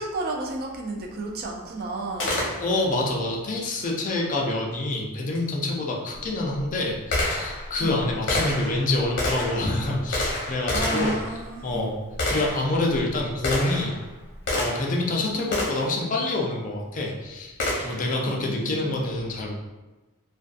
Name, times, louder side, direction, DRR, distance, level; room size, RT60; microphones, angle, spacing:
voice 1, 0.0-2.3 7.8-8.0 10.7-11.9 18.3-19.0, right 2 dB, 45° right, 1 dB, 0.4 m, -32 dB
Gunshot gunfire, 2.2-3.0 5.3-5.4 6.2-15.0 15.5-16.0 17.6-18.1, left 1 dB, 55° left, 0.8 m, -29 dB
voice 2, 2.5-11.2 11.6-12.0 12.3-13.9 14.5-17.5 17.8-19.5, left 2 dB, 40° left, -2 dB, 0.4 m, -27 dB
2.5 x 2.3 x 2.4 m, 1.1 s
head